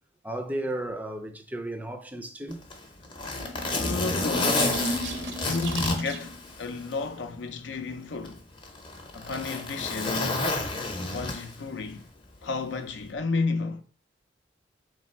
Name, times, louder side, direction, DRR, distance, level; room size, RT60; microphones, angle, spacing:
voice 1, 0.2-2.6 4.9-5.0, right 1 dB, 10° right, 0.4 m, -34 dB
Zipper (clothing), 2.5-7.0 7.4-7.5 8.2-11.7 12.9-13.1, left 2 dB, 30° left, 0.7 m, -30 dB
sound 1, 3.2-6.5, right 1 dB, 70° right, 0.6 m, -34 dB
voice 2, 3.6-4.9 5.1-8.5 9.1-10.3 11.0-12.0 12.4-13.8, left 3 dB, 75° left, 0.5 m, -32 dB
3.3 x 3.3 x 4.3 m
head